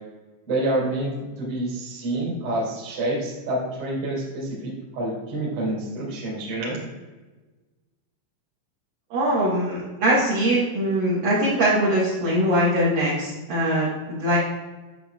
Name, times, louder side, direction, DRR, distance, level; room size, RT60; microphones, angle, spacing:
voice 1, 0.5-1.1 1.4-4.6 4.9-6.8, right 1 dB, 40° right, -4 dB, 2.1 m, -27 dB
voice 2, 9.1-14.4, right 1 dB, 65° right, -8 dB, 2.2 m, -22 dB
8.8 x 7.2 x 2.3 m, 1.2 s
omnidirectional pair, 5.6 m